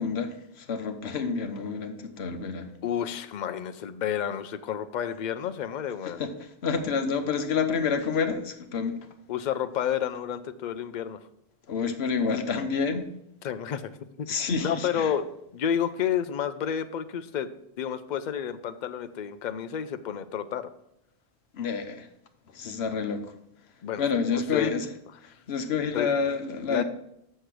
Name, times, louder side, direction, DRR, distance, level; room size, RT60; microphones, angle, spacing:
voice 1, 0.0-2.7 6.0-9.0 11.7-13.1 14.3-15.1 21.5-22.1 22.5-23.3 24.0-24.9 25.2-26.8, left 5 dB, 70° left, 7 dB, 1.1 m, -29 dB
voice 2, 2.8-6.2 9.3-11.2 13.4-13.9 14.2-14.3 14.6-15.3 15.5-17.5 17.8-20.7 23.8-24.0 24.3-24.7 25.3-25.4 25.9-26.1 26.7-26.8, left 9 dB, 55° left, 11 dB, 0.6 m, -30 dB
6.6 x 6.5 x 6.0 m, 0.79 s
omnidirectional pair, 1.1 m